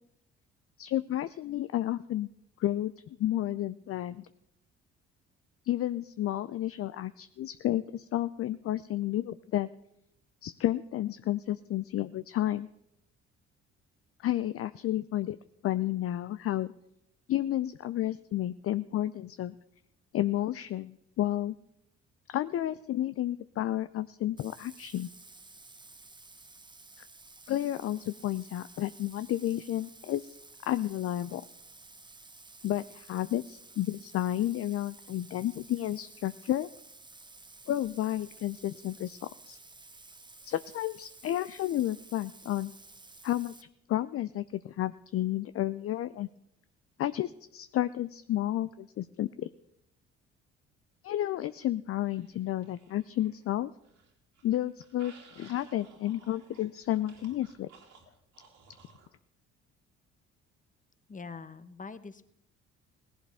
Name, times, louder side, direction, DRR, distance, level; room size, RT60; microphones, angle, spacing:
voice 1, 0.8-2.3 2.6-4.3 5.6-9.7 10.4-12.7 14.2-15.4 15.6-16.7 17.3-19.6 20.1-21.6 22.3-25.1 27.5-30.4 30.7-31.4 32.6-36.7 37.7-39.6 40.4-42.7 43.2-43.5 43.9-46.3 47.0-49.5 51.0-53.7 54.4-57.7, left 13 dB, 45° left, 14 dB, 0.5 m, -31 dB
Bathtub (filling or washing), 24.4-43.6, right 3 dB, 15° right, 0.9 m, -53 dB
sound 1, 52.1-53.4 53.8-59.1, right 5 dB, 65° right, 2.9 m, -58 dB
voice 2, 61.1-62.3, left 4 dB, 25° left, 14 dB, 1.0 m, -44 dB
17.5 x 11.0 x 3.6 m, 0.81 s
hypercardioid pair, 50°, 33 cm